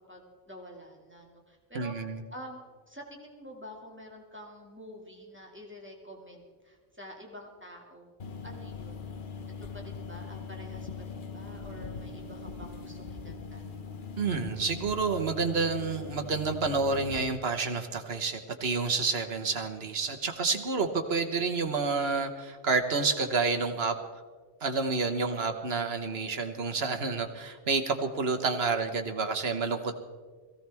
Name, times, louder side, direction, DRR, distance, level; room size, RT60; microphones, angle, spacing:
voice 1, 0.1-1.9 2.3-8.1 8.4-9.1 9.7-13.6 25.2-25.7, equal, 10° right, -1 dB, 2.1 m, -48 dB
voice 2, 1.7-2.2 14.2-23.9 24.6-30.0, right 4 dB, 70° right, 5 dB, 1.5 m, -29 dB
sound 1, 8.2-17.2, left 5 dB, 50° left, 1.0 m, -41 dB
22.0 x 16.0 x 3.5 m, 1.5 s
omnidirectional pair, 1.1 m